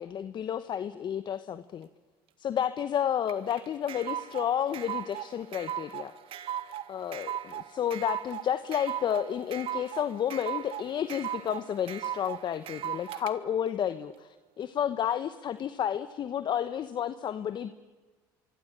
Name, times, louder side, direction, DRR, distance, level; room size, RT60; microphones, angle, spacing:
voice 1, 0.0-1.9 2.4-6.1 6.9-14.3 14.6-17.7, left 9 dB, 45° left, 12 dB, 1.2 m, -31 dB
sound 1, 3.3-13.3, right 10 dB, 60° right, 1.7 m, -37 dB
25.5 x 24.5 x 9.0 m, 1.3 s
hypercardioid pair, 75°, 11 cm